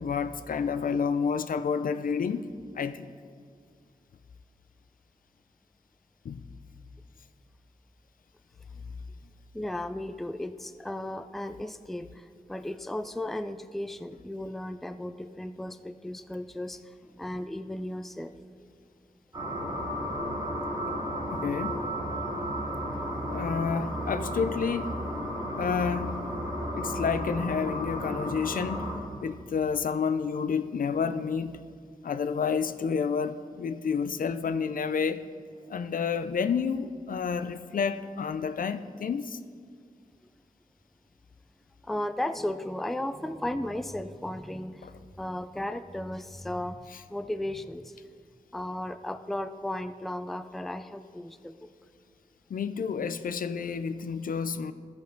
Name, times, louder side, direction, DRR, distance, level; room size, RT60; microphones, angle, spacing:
voice 1, 0.0-3.1 6.2-6.4 21.3-21.8 23.3-25.0 25.6-26.3 26.7-28.8 29.2-31.6 32.0-35.2 35.7-39.4 44.8-44.9 52.5-54.7, left 6 dB, 75° left, 0.4 m, -30 dB
voice 2, 9.5-18.3 41.8-46.8 47.1-48.0 48.5-51.7, left 1 dB, ahead, 0.3 m, -35 dB
sound 1, 19.3-29.0, equal, 25° right, 2.1 m, -33 dB
14.5 x 5.3 x 4.4 m
wide cardioid pair, 90°, 15 cm